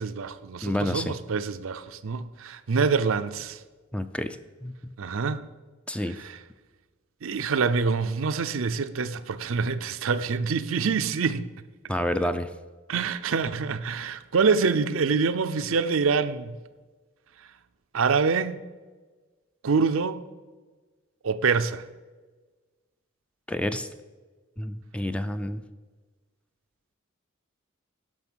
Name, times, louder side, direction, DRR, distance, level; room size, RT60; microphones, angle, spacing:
voice 1, 0.0-3.6 5.0-5.4 6.2-6.3 7.2-11.5 12.9-16.6 17.9-18.6 19.6-20.2 21.2-21.8, right 5 dB, 70° right, 0.5 m, -26 dB
voice 2, 0.6-1.1 3.9-4.4 4.6-4.7 5.9-6.2 11.9-12.5 23.5-23.9 24.6-25.6, left 1 dB, 5° left, 0.4 m, -29 dB
11.0 x 6.3 x 6.2 m
head